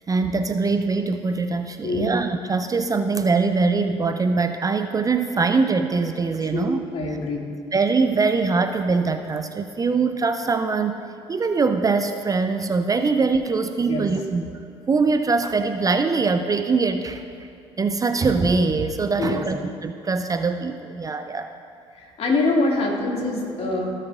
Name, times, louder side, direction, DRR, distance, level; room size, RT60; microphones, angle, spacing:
voice 1, 0.1-6.8 7.7-11.0 11.3-14.5 14.9-17.2 17.8-21.5, right 4 dB, 25° right, 8 dB, 0.5 m, -22 dB
voice 2, 1.8-2.1 6.4-7.5 13.9-14.1 19.2-19.4 21.9-23.9, left 2 dB, 45° left, -1 dB, 2.1 m, -24 dB
17.0 x 6.6 x 2.4 m, 2.5 s
hypercardioid pair, 60°, 14 cm